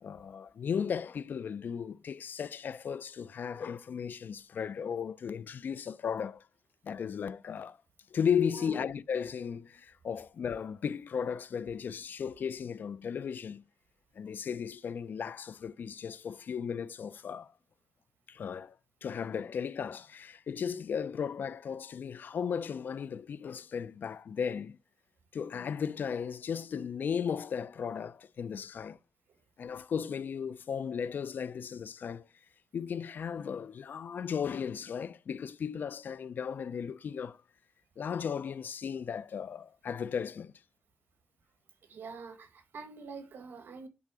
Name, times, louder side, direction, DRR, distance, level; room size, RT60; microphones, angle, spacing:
voice 1, 0.0-6.4 6.8-7.8 8.1-13.6 14.2-17.5 18.3-18.8 19.0-24.8 25.3-29.0 29.6-32.3 32.7-37.4 38.0-40.5, left 7 dB, 65° left, 0.4 m, -35 dB
voice 2, 41.9-43.9, right 4 dB, 80° right, 1.5 m, -45 dB
10.5 x 3.6 x 4.8 m
wide cardioid pair, 105°, 4 cm